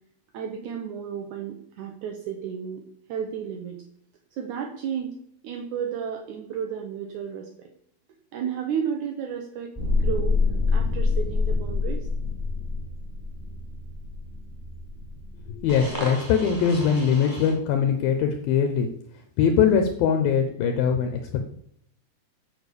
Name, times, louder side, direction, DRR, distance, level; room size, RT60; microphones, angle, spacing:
voice 1, 0.3-3.8 4.3-5.2 5.4-7.7 8.3-10.4 10.7-12.1, right 7 dB, 70° right, 3 dB, 1.9 m, -33 dB
sound 1, 9.7-17.5, left 3 dB, 5° right, 2.9 m, -27 dB
voice 2, 15.5-18.9 19.4-21.4, left 7 dB, 75° left, 5 dB, 2.6 m, -22 dB
8.3 x 7.6 x 6.8 m, 0.68 s
omnidirectional pair, 4.7 m